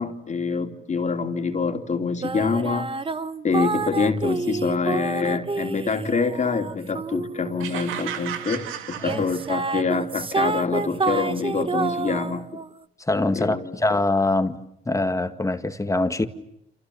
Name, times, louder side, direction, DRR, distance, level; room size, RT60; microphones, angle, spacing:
voice 1, 0.0-2.9 3.4-12.5 13.3-14.0, left 4 dB, 35° left, 3.2 m, -26 dB
sound 1, 2.2-8.4 9.0-12.7, right 4 dB, 25° right, 1.2 m, -29 dB
sound 2, 7.6-9.9, right 10 dB, 85° right, 2.3 m, -34 dB
voice 2, 13.1-14.6 14.9-16.2, left 2 dB, 15° left, 1.9 m, -23 dB
30.0 x 27.5 x 7.0 m
cardioid pair, 90°, 20 cm